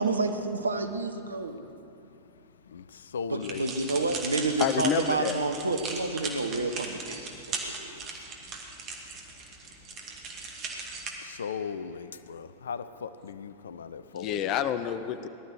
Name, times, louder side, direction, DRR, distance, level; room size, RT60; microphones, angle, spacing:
voice 1, 0.0-1.7 3.3-8.1, right 3 dB, 80° right, 7 dB, 1.0 m, -29 dB
voice 2, 2.7-3.6 3.9-4.0 11.2-14.6, left 6 dB, 65° left, 14 dB, 0.5 m, -38 dB
sound 1, 3.4-11.1, right 4 dB, 35° right, 2.2 m, -38 dB
voice 3, 4.6-5.4 14.1-15.3, left 9 dB, 40° left, 11 dB, 0.8 m, -28 dB
18.5 x 12.0 x 6.4 m, 2.8 s
figure-of-eight pair, 90°, 0 cm